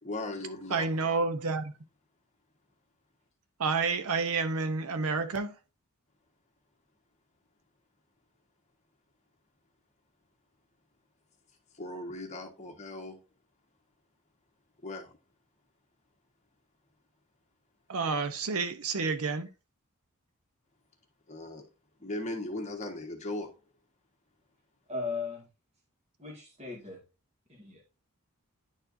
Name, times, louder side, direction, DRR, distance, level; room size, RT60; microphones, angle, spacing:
voice 1, 0.0-1.1 11.7-13.2 14.8-15.2 21.3-21.7 22.0-23.6, left 2 dB, 30° left, 1.4 m, -38 dB
voice 2, 0.7-1.7 3.6-5.5 17.9-19.5, right 4 dB, 75° right, 0.7 m, -29 dB
voice 3, 24.9-25.5 26.2-27.0 27.5-27.8, left 4 dB, 30° right, 2.0 m, -37 dB
10.5 x 4.4 x 2.6 m
head